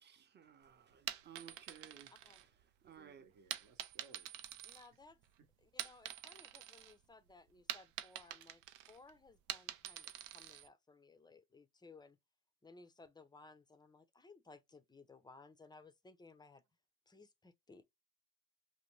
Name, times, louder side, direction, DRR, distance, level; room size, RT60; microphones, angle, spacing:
voice 1, 0.0-2.1 2.4-2.5 2.8-3.3, right 8 dB, 30° right, 0.6 m, -58 dB
sound 1, 0.9-2.9 3.5-5.3 5.6-6.9 7.3-10.7, right 12 dB, 90° right, 0.5 m, -46 dB
voice 2, 2.8-4.3 4.9-5.0 5.4-5.5, right 4 dB, 60° right, 0.8 m, -64 dB
voice 3, 4.6-5.2 5.6-8.6 8.9-12.2 12.6-16.6 17.1-17.9, left 3 dB, 10° left, 0.4 m, -60 dB
2.5 x 2.2 x 3.0 m
supercardioid pair, 70°, 38 cm